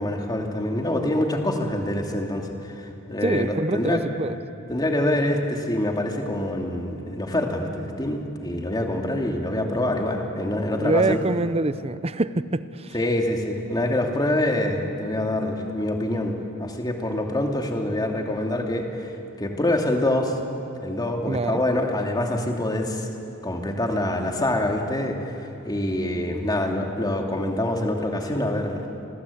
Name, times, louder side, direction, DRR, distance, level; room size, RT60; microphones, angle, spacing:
voice 1, 0.0-4.0 4.7-11.2 12.9-19.1 19.4-20.4 20.8-23.1 23.4-25.3 25.6-28.8, left 1 dB, 20° left, 2 dB, 2.7 m, -25 dB
voice 2, 3.2-4.4 10.7-12.9 21.3-21.6, right 2 dB, 30° right, 14 dB, 0.7 m, -25 dB
29.0 x 20.5 x 8.6 m, 2.8 s
head